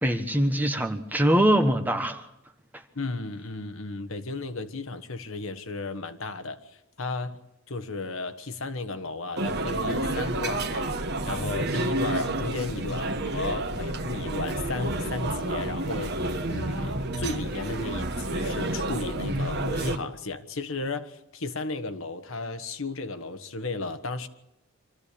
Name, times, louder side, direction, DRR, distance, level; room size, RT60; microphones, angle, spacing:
voice 1, 0.0-2.3, right 1 dB, 10° right, 1.3 m, -23 dB
voice 2, 2.9-24.3, left 3 dB, 70° left, 1.4 m, -34 dB
sound 1, 9.4-20.0, right 1 dB, 50° right, 1.4 m, -29 dB
25.5 x 14.0 x 8.5 m
head